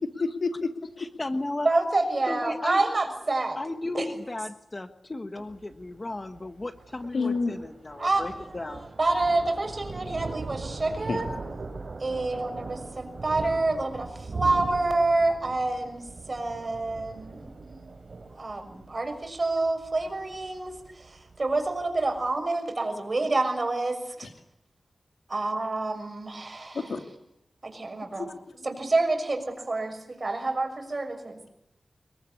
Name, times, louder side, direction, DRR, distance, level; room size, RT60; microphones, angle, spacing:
voice 1, 0.2-0.9 7.1-7.6 11.1-11.4 24.2-24.3 26.7-27.1 28.1-28.6, left 4 dB, 90° left, 6 dB, 2.8 m, -30 dB
voice 2, 1.0-1.7 2.3-2.8 3.5-8.9, left 2 dB, 35° left, 9 dB, 1.4 m, -35 dB
voice 3, 1.6-3.6 3.9-4.1 8.0-8.4 9.0-11.3 12.0-17.9 18.3-24.0 25.3-26.8 27.6-28.3 28.6-31.4, right 2 dB, 40° right, 6 dB, 6.5 m, -28 dB
Thunder, 5.4-22.3, right 3 dB, 65° right, 4.2 m, -40 dB
27.0 x 21.5 x 8.5 m, 0.79 s
wide cardioid pair, 100°, 0 cm